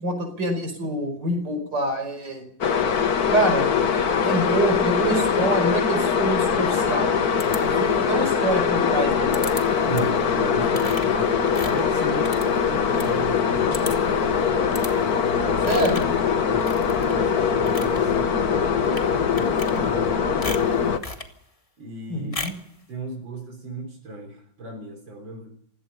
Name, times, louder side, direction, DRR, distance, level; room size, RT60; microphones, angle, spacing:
voice 1, 0.0-2.4 3.3-3.7 4.2-7.1 7.6-9.4 15.7-16.0 22.1-22.5, right 2 dB, 65° right, 6 dB, 5.8 m, -26 dB
sound 1, 2.6-21.0, left 6 dB, 55° left, 1.7 m, -22 dB
sound 2, 7.4-8.1 9.3-9.6 9.9-10.2 10.7-13.1 13.4-13.5 13.7-14.2 14.7-14.9 15.6-16.2 16.6-17.2 17.5-18.0 18.8-19.1 19.4-20.1 20.4-21.3 22.3-22.7, left 2 dB, 20° left, 1.9 m, -36 dB
voice 2, 9.9-15.9 16.5-21.1 21.8-22.4 22.9-25.5, right 2 dB, 90° right, 1 dB, 4.4 m, -36 dB
28.0 x 17.0 x 5.6 m, 0.66 s
omnidirectional pair, 2.0 m